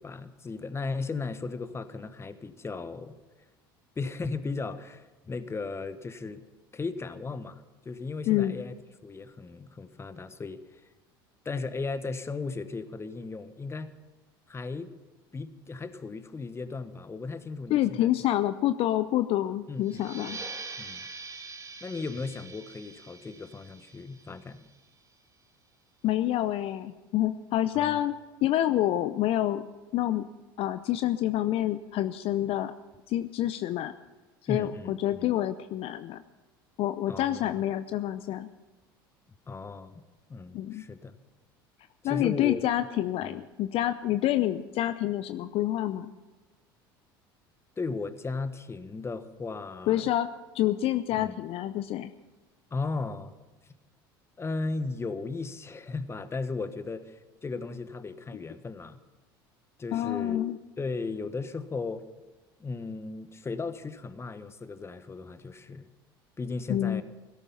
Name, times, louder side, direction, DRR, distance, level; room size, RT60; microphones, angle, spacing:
voice 1, 0.0-3.2 4.0-6.4 6.7-8.7 9.0-10.8 11.4-13.9 14.5-14.9 15.3-18.1 19.7-20.4 20.8-21.1 21.8-24.6 27.7-28.0 34.5-35.3 37.1-37.5 39.5-39.9 40.3-41.1 42.0-42.6 43.3-43.4 47.8-50.1 51.1-51.4 52.7-53.3 54.4-59.0 59.8-60.5 60.8-62.0 62.6-65.9 66.4-67.0, left 3 dB, 20° left, 12 dB, 1.3 m, -36 dB
voice 2, 8.3-8.6 17.7-20.4 26.0-28.1 28.4-29.6 29.9-30.3 30.6-32.7 33.1-33.9 34.5-36.2 36.8-38.5 40.5-40.8 42.0-46.1 49.9-50.3 50.5-52.1 59.9-60.6 66.7-67.0, left 13 dB, 50° left, 11 dB, 0.7 m, -27 dB
sound 1, 19.8-25.1, right 4 dB, 25° right, 2.6 m, -44 dB
16.5 x 13.5 x 5.6 m, 1.2 s
hypercardioid pair, 75°, 12 cm